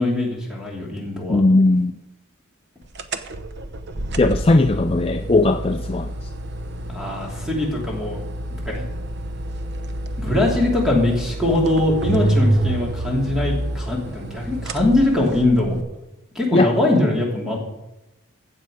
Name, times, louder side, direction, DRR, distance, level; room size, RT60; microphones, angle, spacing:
voice 1, 0.0-1.4 6.9-8.2 8.7-8.8 10.2-15.8 16.3-17.6, left 2 dB, ahead, -3 dB, 2.9 m, -21 dB
voice 2, 1.3-1.9 4.2-6.3 16.5-16.7, left 2 dB, 25° left, 7 dB, 0.4 m, -18 dB
sound 1, 2.9-15.8, right 1 dB, 50° right, 0.8 m, -27 dB
15.5 x 7.7 x 5.0 m, 0.97 s
head